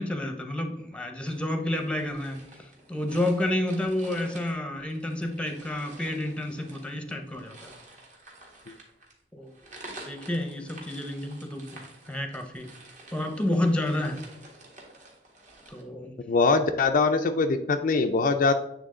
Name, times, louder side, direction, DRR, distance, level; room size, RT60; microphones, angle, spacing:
voice 1, 0.0-2.4 2.9-7.7 9.3-9.5 10.0-11.8 12.1-12.7 13.1-14.2 15.7-16.1, left 1 dB, 5° left, 5 dB, 0.7 m, -30 dB
sound 1, 1.2-15.8, right 2 dB, 45° right, 1.6 m, -49 dB
voice 2, 16.3-18.5, left 4 dB, 50° left, 6 dB, 0.4 m, -22 dB
8.8 x 3.4 x 3.7 m, 0.84 s
head